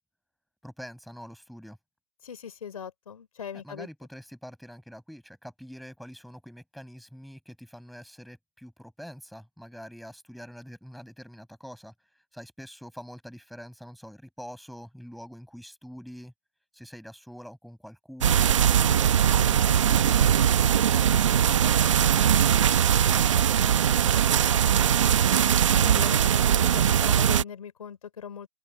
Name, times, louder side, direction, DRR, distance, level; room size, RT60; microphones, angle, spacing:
voice 1, 0.6-1.8 3.5-11.9 12.3-16.3 16.7-20.3 20.9-25.1, equal, ahead, 6.8 m, -45 dB
voice 2, 2.2-3.9 25.7-28.5, left 8 dB, 80° left, 3.7 m, -39 dB
sound 1, 18.2-27.4, right 9 dB, 60° right, 1.1 m, -21 dB
open air
hypercardioid pair, 175°, 18 cm